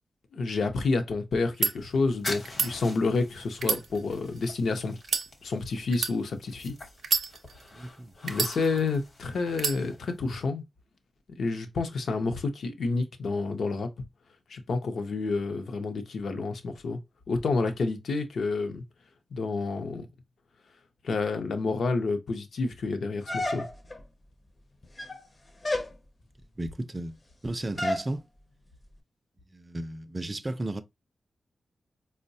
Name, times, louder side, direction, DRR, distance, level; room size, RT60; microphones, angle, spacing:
voice 1, 0.3-5.0 5.4-6.7 8.2-10.6 11.4-13.9 14.5-17.0 17.3-18.8 19.3-20.1 21.0-23.7, left 3 dB, 75° left, 0.6 m, -29 dB
sound 1, 1.4-1.7 2.4-2.7 3.5-4.5 5.0-5.3 5.9-6.2 7.0-7.7 8.3-9.0 9.5-9.8, right 5 dB, 90° right, 0.5 m, -29 dB
sound 2, 1.7-10.4, left 2 dB, 55° left, 0.9 m, -44 dB
voice 2, 7.7-8.1 26.6-27.2 27.4-28.2 29.5-30.8, right 1 dB, 25° right, 0.3 m, -34 dB
sound 3, 23.3-24.0 24.8-25.3 25.6-26.0 27.8-28.1, left 1 dB, 30° left, 0.5 m, -30 dB
4.6 x 2.1 x 2.6 m
wide cardioid pair, 130°, 0 cm